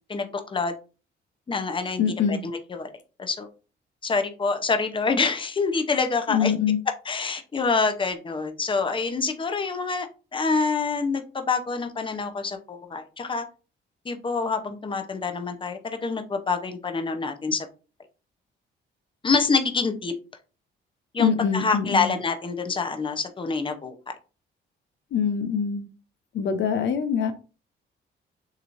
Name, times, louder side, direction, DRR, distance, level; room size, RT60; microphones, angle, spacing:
voice 1, 0.1-0.7 1.5-2.9 3.2-3.5 4.0-6.5 7.0-13.5 14.0-17.7 19.2-20.1 21.1-24.0, left 4 dB, 25° left, 0.8 m, -26 dB
voice 2, 2.0-2.4 6.3-6.8 21.2-22.1 25.1-25.8 26.3-27.3, left 7 dB, 65° left, 0.7 m, -24 dB
6.7 x 3.1 x 2.6 m
cardioid pair, 90°, 20 cm